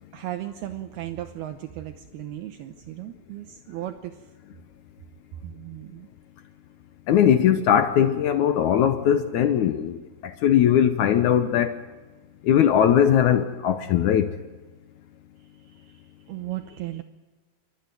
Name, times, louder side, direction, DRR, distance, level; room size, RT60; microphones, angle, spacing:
voice 1, 0.1-4.3 5.4-6.1 15.6-17.0, right 14 dB, 75° right, 7 dB, 2.7 m, -36 dB
voice 2, 7.1-11.7 12.4-14.3, left 9 dB, 85° left, 8 dB, 1.7 m, -20 dB
28.5 x 14.0 x 9.3 m, 1.3 s
omnidirectional pair, 4.9 m